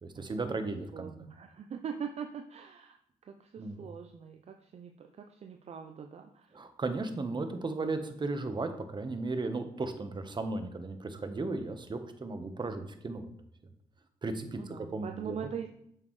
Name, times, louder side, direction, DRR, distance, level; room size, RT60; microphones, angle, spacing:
voice 1, 0.0-1.1 3.6-3.8 6.5-13.3 14.2-15.4, right 3 dB, 35° right, 7 dB, 1.1 m, -35 dB
voice 2, 0.9-3.0 3.3-6.6 14.5-15.7, right 7 dB, 50° right, 6 dB, 0.6 m, -42 dB
7.3 x 6.3 x 3.2 m, 0.74 s
supercardioid pair, 65°, 13 cm